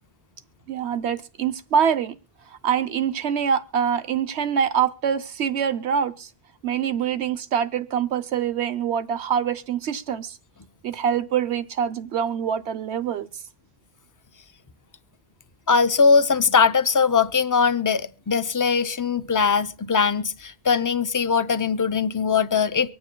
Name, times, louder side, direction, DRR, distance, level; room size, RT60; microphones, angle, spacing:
voice 1, 0.7-2.1 2.5-6.3 6.6-10.4 10.8-13.3, right 8 dB, 80° right, 1.1 m, -25 dB
voice 2, 15.7-22.9, left 5 dB, 30° left, 0.4 m, -21 dB
24.5 x 9.4 x 2.2 m
omnidirectional pair, 1.1 m